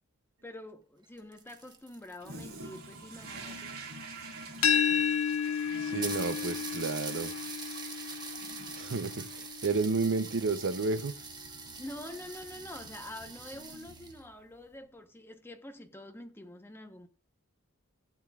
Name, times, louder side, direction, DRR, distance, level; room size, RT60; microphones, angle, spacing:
voice 1, 0.4-3.7 11.8-17.1, left 1 dB, 10° left, 1.0 m, -46 dB
sound 1, 1.0-3.8 4.7-4.8 5.0-5.1 5.4-5.5 6.0-14.2, right 4 dB, 20° right, 1.3 m, -44 dB
Toilet flush, 2.2-14.5, right 3 dB, 85° right, 2.5 m, -48 dB
sound 2, 4.6-10.4, left 7 dB, 80° left, 0.7 m, -32 dB
voice 2, 5.8-7.3 8.7-11.1, right 4 dB, 60° right, 0.7 m, -31 dB
15.5 x 9.5 x 2.4 m
head